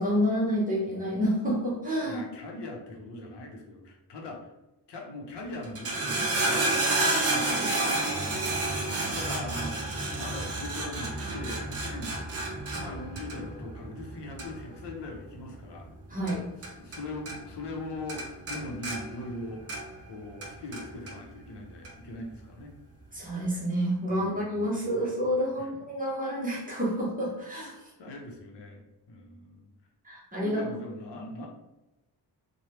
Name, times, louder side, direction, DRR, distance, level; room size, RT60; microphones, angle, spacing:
voice 1, 0.0-2.2 16.1-16.5 23.1-27.7 30.0-30.6, equal, 20° right, -5 dB, 0.8 m, -29 dB
voice 2, 2.0-4.5 4.9-8.8 9.1-9.8 10.1-12.2 12.7-15.9 16.6-19.8 20.1-22.7 24.1-24.5 25.6-25.8 28.0-29.7 30.4-31.5, left 2 dB, 90° left, 0 dB, 0.7 m, -41 dB
sound 1, 5.6-17.0 17.3-17.8 18.1-20.1 20.4-21.2 21.8-21.9, right 2 dB, 40° right, 0.4 m, -30 dB
3.2 x 2.2 x 2.9 m, 0.98 s
wide cardioid pair, 170°, 41 cm